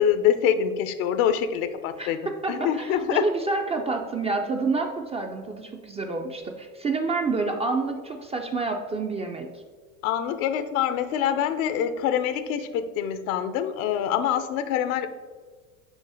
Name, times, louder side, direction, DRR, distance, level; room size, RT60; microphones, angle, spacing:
voice 1, 0.0-3.2 10.0-15.1, left 9 dB, 70° left, 11 dB, 0.7 m, -25 dB
voice 2, 2.0-9.5, right 3 dB, 15° right, 3 dB, 0.3 m, -28 dB
5.4 x 4.8 x 4.7 m, 1.5 s
supercardioid pair, 105°, 42 cm